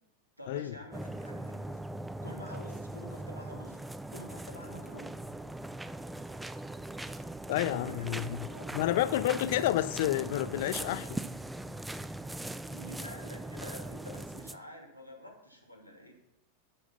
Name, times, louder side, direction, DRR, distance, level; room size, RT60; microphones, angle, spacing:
voice 1, 0.4-1.8 2.2-3.8 4.1-5.2 7.8-9.0 12.7-16.1, equal, 90° right, 1 dB, 2.6 m, -48 dB
sound 1, 0.9-14.6, right 1 dB, 5° right, 0.5 m, -40 dB
voice 2, 7.5-11.2, left 13 dB, 55° left, 14 dB, 0.6 m, -30 dB
12.0 x 7.3 x 5.7 m, 0.84 s
figure-of-eight pair, 90°, 0 cm